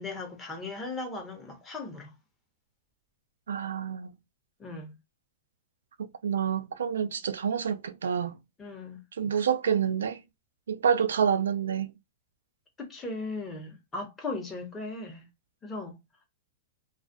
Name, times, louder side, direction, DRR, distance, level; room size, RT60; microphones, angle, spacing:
voice 1, 0.0-2.1 4.6-4.9 8.6-9.0 12.8-15.3 15.6-16.0, left 3 dB, 20° left, 0.9 m, -37 dB
voice 2, 3.5-4.1 6.0-8.4 9.2-10.2 10.7-11.9, right 7 dB, 90° right, 0.3 m, -28 dB
2.3 x 2.1 x 2.6 m
hypercardioid pair, 130°, 0 cm